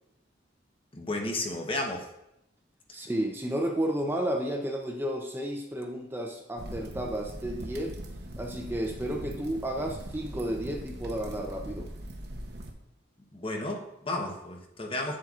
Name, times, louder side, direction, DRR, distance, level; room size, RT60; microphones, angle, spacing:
voice 1, 0.9-2.1 13.3-15.2, left 2 dB, 30° left, 2 dB, 0.9 m, -33 dB
voice 2, 2.9-7.9 8.4-11.9, right 1 dB, 10° right, 1 dB, 0.6 m, -32 dB
sound 1, 6.6-12.7, right 1 dB, 60° right, 0.8 m, -41 dB
8.3 x 7.5 x 2.4 m, 0.83 s
head